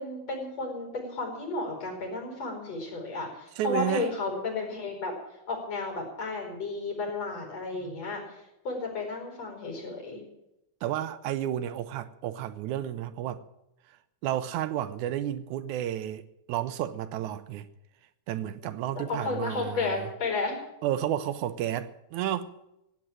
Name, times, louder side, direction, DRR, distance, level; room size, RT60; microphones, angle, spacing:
voice 1, 0.0-5.1 5.5-10.2 18.9-20.6, left 3 dB, 55° left, 6.0 m, -33 dB
voice 2, 3.6-4.1 7.8-8.0 10.8-13.4 14.2-17.7 18.3-20.1 20.8-22.5, right 11 dB, 80° right, 2.1 m, -31 dB
16.0 x 9.1 x 8.9 m
omnidirectional pair, 3.5 m